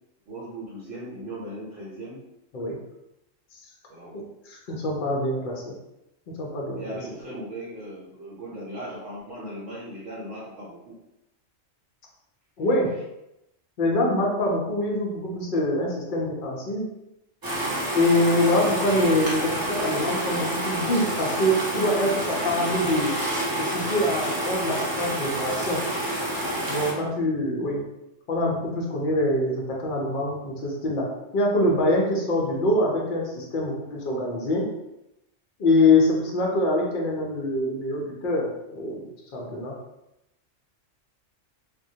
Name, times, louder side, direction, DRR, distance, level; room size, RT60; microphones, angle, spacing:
voice 1, 0.3-2.2 3.9-4.1 6.8-11.0 26.9-27.1, right 1 dB, 75° right, -6 dB, 1.0 m, -38 dB
voice 2, 4.1-5.7 6.4-6.8 12.6-12.9 13.8-16.8 17.9-23.1 23.6-25.8 26.7-27.8 28.3-31.0 31.3-34.6 35.6-39.0 39.3-39.7, left 1 dB, 60° left, -2 dB, 0.5 m, -24 dB
sound 1, 17.4-26.9, right 1 dB, 35° right, 0.3 m, -28 dB
2.2 x 2.1 x 2.7 m, 0.89 s
omnidirectional pair, 1.3 m